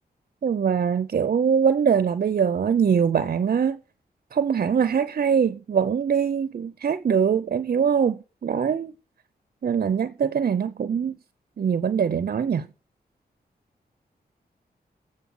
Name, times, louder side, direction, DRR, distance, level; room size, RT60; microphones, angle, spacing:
voice 1, 0.4-3.8 4.3-8.9 9.6-11.2 11.6-12.7, right 7 dB, 55° right, 0.6 m, -23 dB
8.5 x 6.5 x 5.5 m
wide cardioid pair, 85°, 17 cm